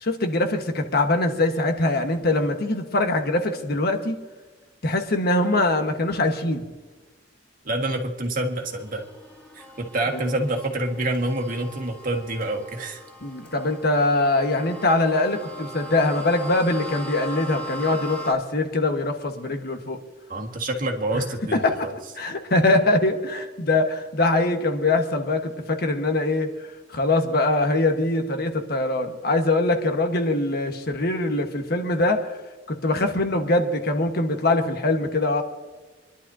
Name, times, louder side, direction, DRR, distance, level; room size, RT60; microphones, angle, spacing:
voice 1, 0.0-4.1 4.8-6.7 10.1-10.3 13.2-20.0 21.1-21.2 21.5-21.9 22.2-26.5 26.9-32.4 32.7-35.4, left 2 dB, 55° left, 5 dB, 1.4 m, -23 dB
voice 2, 7.6-9.1 9.6-13.0 20.3-21.9, right 1 dB, 50° right, 1 dB, 1.8 m, -27 dB
sound 1, 8.6-18.3, equal, 5° left, 2.8 m, -39 dB
26.5 x 11.5 x 2.8 m, 1.2 s
head